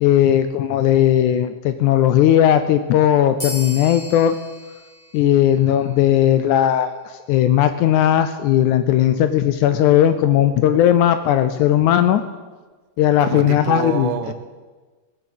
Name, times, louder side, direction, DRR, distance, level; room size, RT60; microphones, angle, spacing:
voice 1, 0.0-4.4 5.1-6.9 7.3-12.2 13.0-14.3, left 11 dB, 80° left, 10 dB, 1.9 m, -17 dB
sound 1, 3.4-6.4, left 1 dB, 5° left, 2.4 m, -37 dB
voice 2, 13.2-14.3, right 8 dB, 80° right, 9 dB, 2.5 m, -25 dB
17.5 x 7.9 x 7.7 m, 1.3 s
omnidirectional pair, 3.8 m